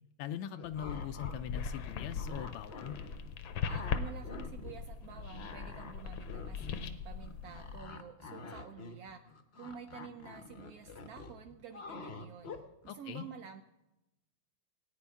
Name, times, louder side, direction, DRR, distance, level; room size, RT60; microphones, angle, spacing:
voice 1, 0.2-2.9 12.9-13.2, left 10 dB, 90° left, 8 dB, 1.5 m, -41 dB
sound 1, 0.5-1.4 1.7-3.3 3.6-4.7 5.0-12.9, left 4 dB, 50° left, 0.8 m, -47 dB
sound 2, 0.7-7.8, left 6 dB, 75° left, 1.5 m, -40 dB
voice 2, 3.7-9.2 9.5-12.6 12.8-13.6, right 7 dB, 75° right, 6 dB, 0.8 m, -49 dB
19.0 x 9.4 x 3.5 m, 0.94 s
omnidirectional pair, 2.2 m